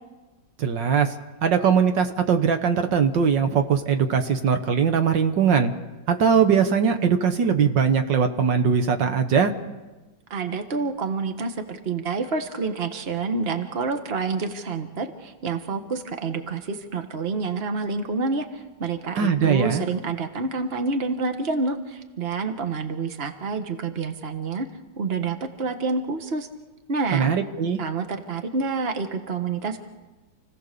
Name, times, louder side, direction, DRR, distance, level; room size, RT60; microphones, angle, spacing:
voice 1, 0.6-1.1 1.4-5.7 6.1-9.5 19.1-19.8 27.1-27.8, right 6 dB, 75° right, 7 dB, 1.9 m, -21 dB
voice 2, 10.3-24.7 25.0-26.5 26.9-27.3 27.8-29.8, right 4 dB, 35° right, 7 dB, 1.6 m, -28 dB
29.0 x 17.0 x 6.8 m, 1.2 s
omnidirectional pair, 2.0 m